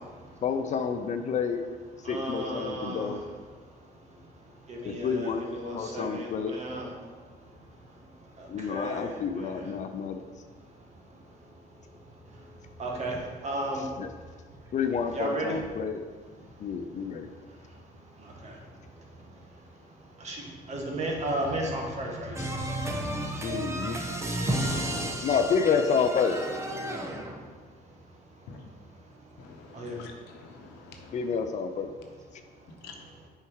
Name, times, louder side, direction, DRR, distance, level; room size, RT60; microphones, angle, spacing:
voice 1, 0.4-1.6 2.1-3.2 4.8-5.4 5.7-6.6 8.5-10.2 13.8-14.1 14.7-16.0 16.6-17.3 22.4-22.5 23.4-24.0 25.2-26.4 31.1-31.9, left 6 dB, 45° left, 0.5 m, -29 dB
voice 2, 2.0-3.2 4.7-6.9 8.7-9.1 9.4-9.5 12.8-13.2 13.4-13.8 15.1-15.6 20.2-20.4 20.7-22.5 29.7-30.0, right 1 dB, 40° right, 1.6 m, -33 dB
voice 3, 22.3-27.5, right 1 dB, 15° right, 1.1 m, -32 dB
voice 4, 29.4-31.3 32.8-32.9, left 5 dB, 90° left, 1.0 m, -48 dB
6.9 x 4.5 x 4.7 m
cardioid pair, 110°, 17 cm